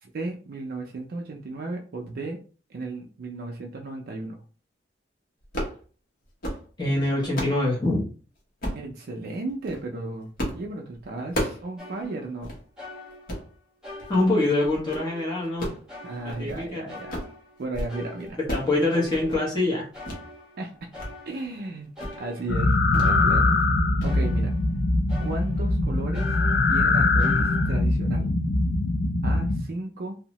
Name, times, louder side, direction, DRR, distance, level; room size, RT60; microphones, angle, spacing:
voice 1, 0.0-2.4 2.7-4.4 8.7-12.5 16.0-17.2 17.6-18.4 20.6-20.7 21.3-21.9 22.2-23.6 24.0-24.5 25.2-26.4 26.7-28.3 29.2-30.2, right 2 dB, 55° right, 1 dB, 0.4 m, -34 dB
sound 1, 5.4-5.8 6.2-6.6 7.1-7.6 8.6-8.9 9.5-9.8 10.4-10.6 10.9-11.7 12.0-12.1 12.4-12.6 13.1-13.5 14.0-14.3 14.6-15.1 15.4-16.7 16.9-17.4 17.6-17.9 18.2-18.7 19.0-19.4 20.0-20.2 20.6-21.1 21.4-21.6 22.0-22.2 22.9-23.2 23.5-23.7 24.0-24.1, equal, 50° left, 0.9 m, -33 dB
voice 2, 6.8-8.1 14.1-15.7 16.2-16.9 18.5-19.9, left 2 dB, 25° left, -4 dB, 0.8 m, -24 dB
sound 2, 11.8-12.5 12.8-13.5 13.8-15.6 15.9-16.6 16.9-19.6 19.9-21.6 22.0-24.8 25.1-25.8 26.1-27.8, left 2 dB, 5° right, 0.9 m, -44 dB
sound 3, 22.5-29.6, left 2 dB, 80° left, 0.4 m, -22 dB
2.7 x 2.0 x 2.8 m, 0.38 s
head